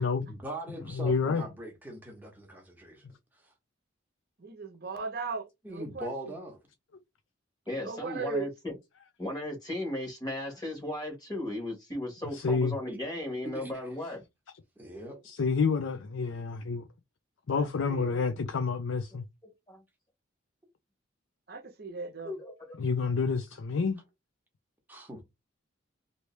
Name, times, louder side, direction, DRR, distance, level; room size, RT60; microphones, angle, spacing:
voice 1, 0.3-3.0 3.3-3.5 5.6-6.6 12.9-13.0 13.5-13.9 14.8-15.2 24.9-25.2, right 1 dB, 10° right, 1.0 m, -41 dB
voice 2, 0.9-1.4 12.3-12.8 15.2-16.8 17.5-19.2 22.8-24.0, left 5 dB, 70° left, 0.5 m, -28 dB
voice 3, 4.4-6.4 7.8-8.5 17.5-18.3 21.5-22.3, right 4 dB, 50° right, 0.8 m, -38 dB
voice 4, 7.7-8.7 9.2-14.2 19.4-19.8 22.2-22.8, left 1 dB, 20° left, 1.4 m, -36 dB
3.1 x 2.7 x 3.2 m
head